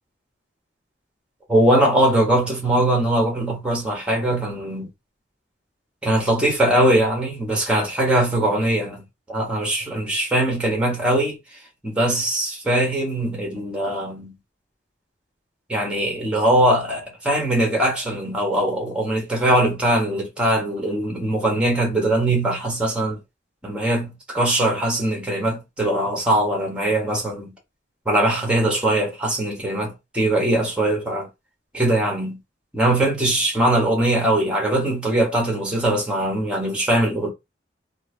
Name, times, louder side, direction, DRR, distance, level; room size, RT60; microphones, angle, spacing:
voice 1, 1.5-4.9 6.0-11.4 11.8-14.3 15.7-23.2 23.6-27.5 28.0-31.3 31.7-32.4 32.7-37.3, right 1 dB, 5° right, 1.3 m, -21 dB
3.1 x 2.6 x 3.3 m
head